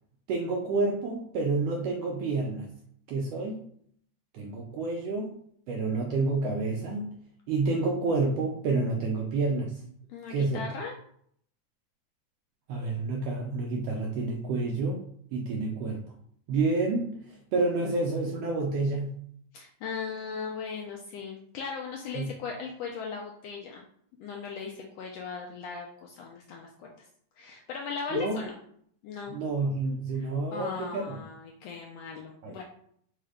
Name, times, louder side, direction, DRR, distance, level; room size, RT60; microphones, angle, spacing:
voice 1, 0.3-2.7 3.1-3.6 4.3-5.3 5.7-7.2 7.5-9.8 10.3-10.6 12.7-15.0 15.3-16.0 16.5-17.2 17.5-19.1 22.1-22.3 28.1-28.4 29.3-31.2 32.4-32.5, right 3 dB, 80° right, 0 dB, 1.5 m, -29 dB
voice 2, 10.1-11.0 19.5-23.8 24.2-26.9 27.4-28.5 29.0-29.4 30.1-32.6, left 5 dB, 80° left, 0 dB, 1.5 m, -38 dB
4.7 x 2.1 x 4.8 m, 0.65 s
omnidirectional pair, 3.3 m